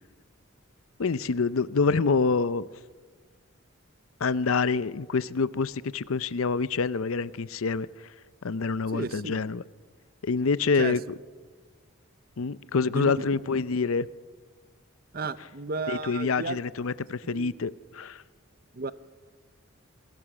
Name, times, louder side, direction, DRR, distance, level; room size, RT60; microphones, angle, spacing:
voice 1, 1.0-2.6 4.2-7.9 8.4-9.6 10.2-11.0 12.4-14.1 15.9-18.2, left 4 dB, 75° left, 0.6 m, -26 dB
voice 2, 8.9-9.4 10.8-11.0 12.9-13.1 15.1-16.6 17.2-17.5 18.7-18.9, right 3 dB, 45° right, 0.7 m, -33 dB
27.5 x 20.5 x 6.1 m
head